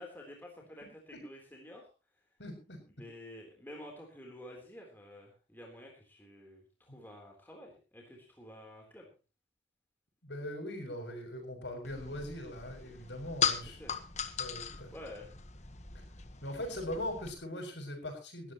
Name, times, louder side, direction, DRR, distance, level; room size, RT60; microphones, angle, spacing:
voice 1, 0.0-1.9 3.0-9.1 13.6-13.9 14.9-15.3, left 1 dB, 10° left, 0 dB, 3.7 m, -50 dB
voice 2, 2.4-2.8 7.0-7.1 10.2-13.8 14.4-14.9 16.4-18.5, left 1 dB, 80° left, 4 dB, 6.7 m, -40 dB
sound 1, 11.8-17.3, left 7 dB, 40° left, 1.3 m, -38 dB
20.5 x 13.5 x 3.1 m, 0.33 s
head